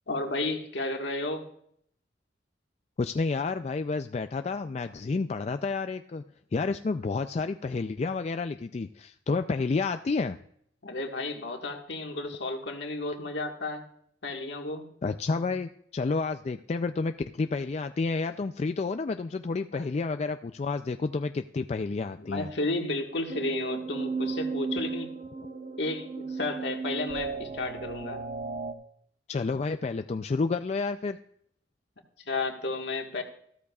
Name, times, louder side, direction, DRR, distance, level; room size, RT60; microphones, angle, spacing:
voice 1, 0.1-1.4 10.8-13.8 14.2-14.8 19.7-19.8 22.2-25.1 25.8-28.2 32.2-33.2, left 2 dB, 65° left, 3 dB, 1.6 m, -32 dB
voice 2, 3.0-6.2 6.5-10.4 15.0-22.5 29.3-31.2, left 4 dB, 35° left, 8 dB, 0.3 m, -30 dB
sound 1, 23.3-28.7, right 4 dB, 40° right, 1.0 m, -35 dB
14.5 x 13.0 x 2.4 m, 0.68 s
head